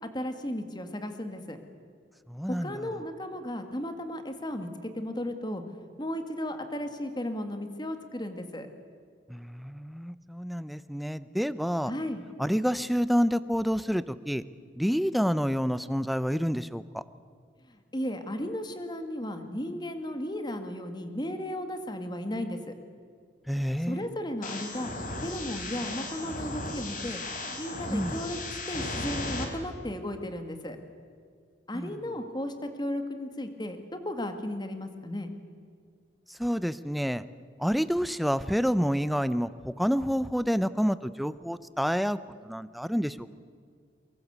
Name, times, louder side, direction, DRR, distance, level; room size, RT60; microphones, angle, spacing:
voice 1, 0.0-1.6 2.5-5.6 6.0-8.7 11.9-12.2 17.9-22.6 23.8-24.9 25.2-27.2 27.6-30.8 31.7-35.3, left 1 dB, 25° left, 7 dB, 2.1 m, -35 dB
voice 2, 2.3-2.9 9.3-11.9 12.4-14.4 14.8-17.0 23.5-24.1 27.9-28.2 31.7-32.0 36.3-37.2 37.6-43.3, equal, ahead, 15 dB, 0.6 m, -28 dB
sound 1, 24.4-29.4, left 2 dB, 50° left, 3.7 m, -36 dB
24.0 x 22.0 x 8.2 m, 2.2 s
head